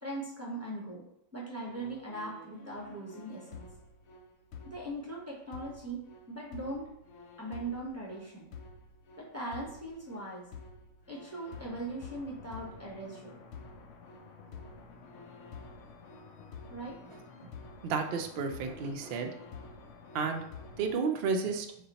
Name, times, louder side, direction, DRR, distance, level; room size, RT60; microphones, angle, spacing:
voice 1, 0.0-1.0 1.3-3.7 4.6-6.0 6.3-6.9 7.4-8.5 9.2-10.5 11.1-13.4 16.7-17.0, right 2 dB, 15° right, -5 dB, 0.6 m, -40 dB
sound 1, 1.6-20.9, left 4 dB, 70° left, 0.8 m, -50 dB
voice 2, 17.8-19.3 20.1-20.4 20.8-21.7, right 5 dB, 60° right, 4 dB, 0.6 m, -31 dB
4.1 x 2.3 x 4.0 m, 0.76 s
omnidirectional pair, 1.4 m